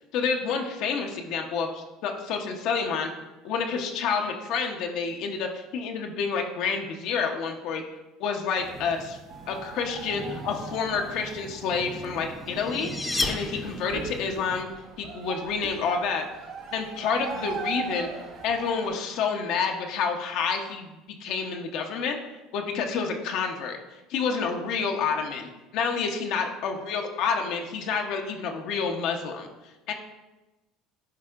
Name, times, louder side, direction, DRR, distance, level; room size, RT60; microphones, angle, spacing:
voice 1, 0.1-3.1 3.4-7.8 8.2-9.2 9.5-12.9 13.3-14.7 15.0-16.2 16.7-18.1 18.4-22.2 22.5-23.8 24.1-29.5 29.9-30.0, left 5 dB, 65° left, 3 dB, 0.7 m, -29 dB
sound 1, 8.6-14.6, right 2 dB, 25° right, 0.7 m, -41 dB
sound 2, 9.3-18.9, right 5 dB, 55° right, 1.1 m, -40 dB
sound 3, 12.3-14.2, left 2 dB, 20° left, 0.8 m, -32 dB
10.5 x 4.2 x 2.4 m, 1.1 s
hypercardioid pair, 75°, 0 cm